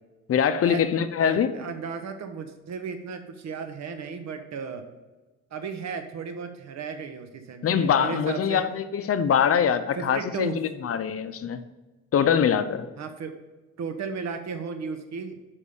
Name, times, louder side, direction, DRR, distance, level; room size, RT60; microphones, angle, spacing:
voice 1, 0.3-1.5 7.6-11.6 12.1-12.9, left 8 dB, 50° left, 0.6 m, -23 dB
voice 2, 1.2-4.9 5.5-8.6 10.0-10.6 13.0-13.3 13.8-15.4, right 5 dB, 60° right, 1.1 m, -34 dB
6.6 x 5.4 x 5.4 m
cardioid pair, 90°, 30 cm